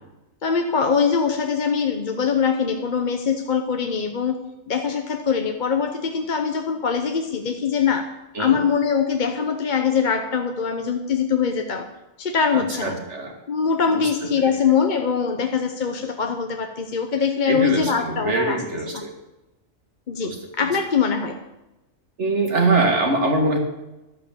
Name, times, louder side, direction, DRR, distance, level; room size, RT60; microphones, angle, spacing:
voice 1, 0.4-4.4 4.7-8.1 8.4-11.9 12.2-13.0 13.5-18.6 18.9-19.0 20.1-21.4, left 6 dB, 40° left, 5 dB, 0.9 m, -22 dB
voice 2, 12.5-13.4 13.9-14.5 17.5-19.2 20.2-20.7 22.2-23.6, right 2 dB, 60° right, 2 dB, 2.3 m, -23 dB
12.0 x 8.2 x 7.2 m, 0.98 s
omnidirectional pair, 1.4 m